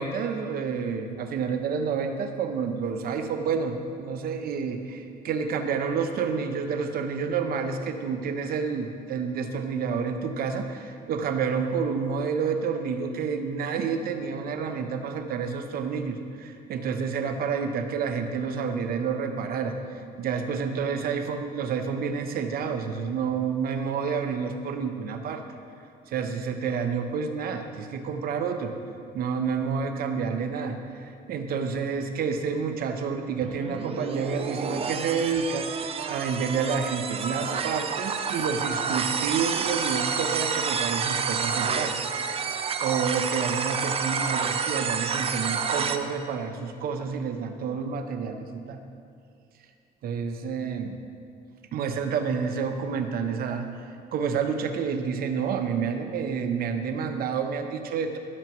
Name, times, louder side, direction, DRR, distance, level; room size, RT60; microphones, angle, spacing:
voice 1, 0.0-25.4 26.1-28.8 29.1-42.0 42.8-48.8 50.0-51.0 51.7-53.7 54.1-58.2, right 6 dB, 60° right, 6 dB, 0.9 m, -29 dB
sound 1, 33.4-46.0, right 6 dB, 35° right, 0.5 m, -29 dB
15.5 x 6.8 x 3.1 m, 2.4 s
cardioid pair, 110°, 17 cm